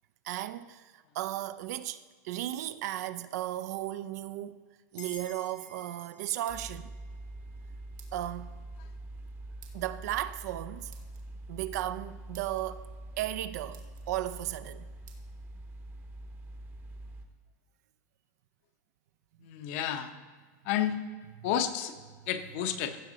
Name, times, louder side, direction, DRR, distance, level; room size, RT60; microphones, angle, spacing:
voice 1, 0.2-4.6 4.9-6.9 8.1-8.5 9.7-10.9 11.5-12.9 13.2-14.9 21.4-21.5, right 13 dB, 65° right, 0.5 m, -35 dB
sound 1, 4.9-5.7 6.4-6.9 8.0-8.3 9.6-9.9 10.9-11.2 11.9-12.0 12.3-12.6 13.3-13.4 13.7-14.1 15.1-15.2, right 9 dB, 90° right, 1.4 m, -56 dB
sound 2, 5.0-8.1, left 3 dB, 90° left, 1.4 m, -53 dB
sound 3, 6.5-17.3, right 1 dB, 20° right, 0.8 m, -45 dB
voice 2, 19.4-20.1 20.6-21.0 21.4-21.9 22.3-23.0, left 10 dB, 45° left, 0.7 m, -31 dB
15.5 x 6.5 x 3.9 m
supercardioid pair, 155°, 10 cm